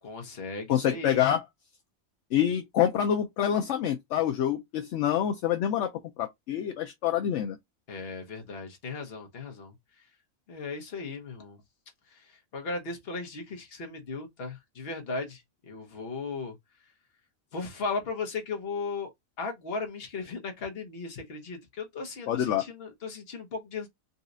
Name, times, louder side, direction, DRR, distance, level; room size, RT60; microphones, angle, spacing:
voice 1, 0.0-1.2 7.9-9.7 10.5-11.6 12.1-16.5 17.5-19.1 19.4-23.9, left 4 dB, 50° left, 1.1 m, -36 dB
voice 2, 0.7-1.4 2.3-5.9 6.2-7.6 22.3-22.7, left 10 dB, 70° left, 0.8 m, -26 dB
4.0 x 2.3 x 2.6 m
omnidirectional pair, 1.4 m